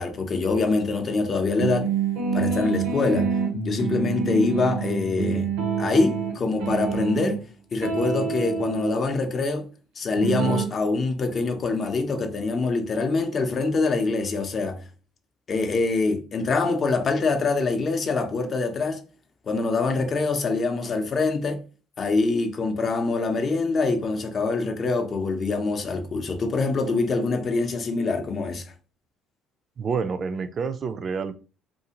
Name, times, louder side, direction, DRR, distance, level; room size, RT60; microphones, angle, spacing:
voice 1, 0.0-1.9 2.3-3.3 3.6-5.5 5.8-7.4 7.7-9.7 10.0-14.8 15.5-19.0 19.5-21.6 22.0-28.7, left 3 dB, 45° left, 0.6 m, -24 dB
sound 1, 1.6-7.4 7.8-8.9 10.2-10.7, right 5 dB, 80° right, 0.7 m, -27 dB
voice 2, 29.8-31.3, right 5 dB, 45° right, 0.3 m, -28 dB
2.6 x 2.4 x 2.8 m
hypercardioid pair, 55°, 0 cm